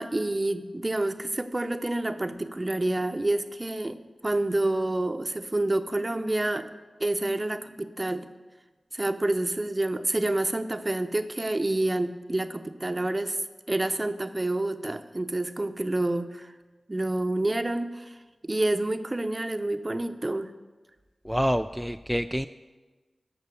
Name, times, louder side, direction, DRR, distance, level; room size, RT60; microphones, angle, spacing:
voice 1, 0.0-6.7 7.0-8.3 8.9-13.4 13.7-16.5 16.9-18.2 18.4-20.5, right 2 dB, 30° right, 9 dB, 0.8 m, -28 dB
voice 2, 21.3-22.5, equal, ahead, 8 dB, 0.3 m, -27 dB
14.5 x 5.7 x 7.0 m, 1.3 s
cardioid pair, 45°, 0 cm